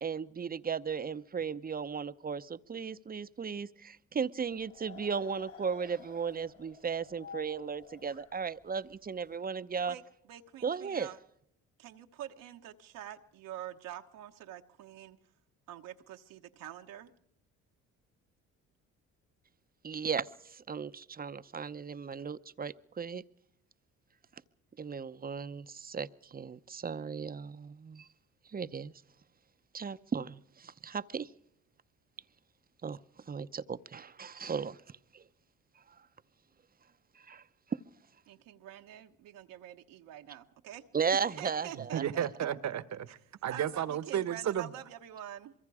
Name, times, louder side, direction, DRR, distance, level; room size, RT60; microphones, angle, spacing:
voice 1, 0.0-10.0 10.6-11.1 19.8-23.2 24.8-28.1 28.5-28.9 29.7-31.3 32.8-35.2 37.1-37.4 37.7-37.8 40.9-42.0, right 6 dB, 25° right, 14 dB, 0.8 m, -36 dB
sound 1, 4.4-9.3, left 5 dB, 45° left, 1.9 m, -52 dB
voice 2, 10.3-11.2 11.8-15.2 15.7-17.1 38.3-40.8 41.1-42.0 43.5-45.5, right 12 dB, 75° right, 4 dB, 1.2 m, -46 dB
voice 3, 41.7-44.7, right 10 dB, 55° right, 15 dB, 1.2 m, -33 dB
25.0 x 23.0 x 4.9 m, 0.71 s
supercardioid pair, 75°, 33 cm